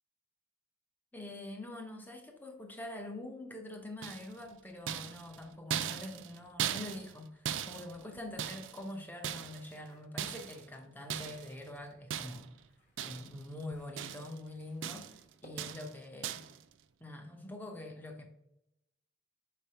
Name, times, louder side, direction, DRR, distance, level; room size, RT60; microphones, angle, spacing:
voice 1, 1.1-12.5 13.0-15.0 15.4-16.4 17.0-18.2, left 1 dB, 10° left, 4 dB, 0.7 m, -45 dB
sound 1, 4.0-4.5 4.9-7.2 7.4-8.9 9.2-9.8 10.2-10.7 11.1-11.5 12.1-12.6 13.0-13.5 13.7-14.4 14.8-15.2 15.6-15.9 16.2-16.6, right 9 dB, 85° right, 0.4 m, -39 dB
sound 2, 9.5-11.7 12.2-16.0, left 1 dB, 40° left, 1.4 m, -63 dB
5.1 x 3.4 x 5.5 m, 0.83 s
head